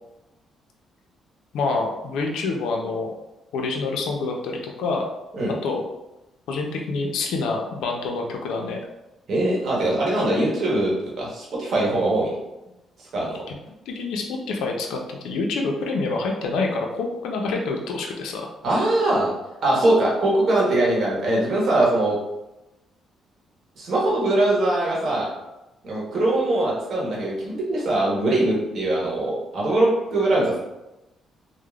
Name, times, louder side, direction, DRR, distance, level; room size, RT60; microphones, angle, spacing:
voice 1, 1.5-3.1 3.5-5.1 5.6-5.9 6.5-8.8 13.5-18.4, left 3 dB, 85° left, 1 dB, 0.4 m, -27 dB
voice 2, 9.3-12.3 13.1-13.4 18.6-19.3 19.6-22.2 23.8-25.3 25.8-30.6, right 1 dB, 55° right, -5 dB, 0.9 m, -22 dB
3.1 x 2.0 x 2.3 m, 0.95 s
cardioid pair, 90°, 0 cm